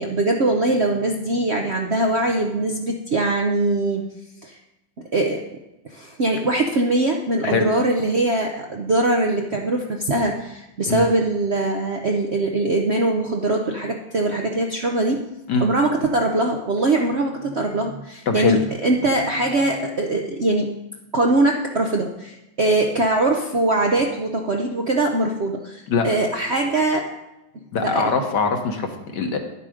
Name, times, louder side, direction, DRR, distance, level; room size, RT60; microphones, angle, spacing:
voice 1, 0.0-4.0 4.4-4.6 5.1-5.4 5.8-15.2 15.6-20.7 21.1-27.0 27.8-28.0, right 2 dB, 55° right, 1 dB, 0.7 m, -22 dB
voice 2, 18.3-18.6 25.9-26.1 27.7-29.4, left 5 dB, 65° left, 4 dB, 1.8 m, -22 dB
10.5 x 7.4 x 5.0 m, 0.96 s
omnidirectional pair, 2.1 m